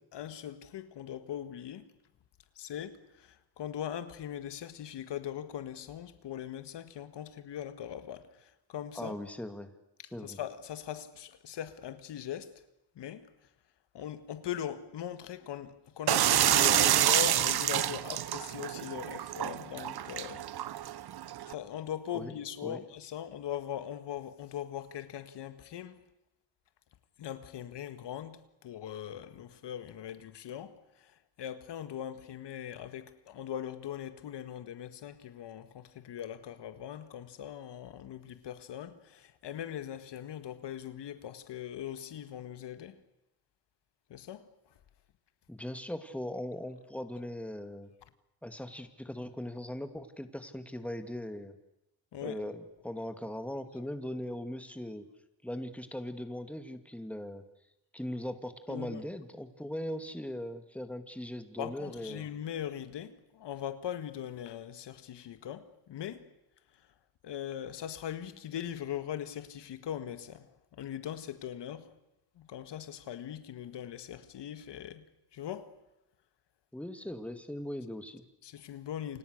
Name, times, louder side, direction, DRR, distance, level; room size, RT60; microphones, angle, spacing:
voice 1, 0.1-1.9 2.6-9.2 10.0-12.5 13.0-13.3 13.9-20.9 21.5-26.0 27.2-43.0 44.1-44.5 52.1-52.4 58.7-59.0 61.6-66.3 67.2-71.9 72.4-75.7 78.4-79.2, left 10 dB, 85° left, 1.8 m, -40 dB
voice 2, 9.0-9.7 10.1-10.4 22.1-22.3 22.6-22.8 45.5-47.9 48.4-51.6 52.2-55.0 55.4-57.4 57.9-62.2 76.7-78.2, left 1 dB, 5° left, 2.3 m, -39 dB
sound 1, 16.1-21.5, right 11 dB, 65° right, 1.0 m, -28 dB
29.0 x 26.5 x 6.6 m
cardioid pair, 105°, 41 cm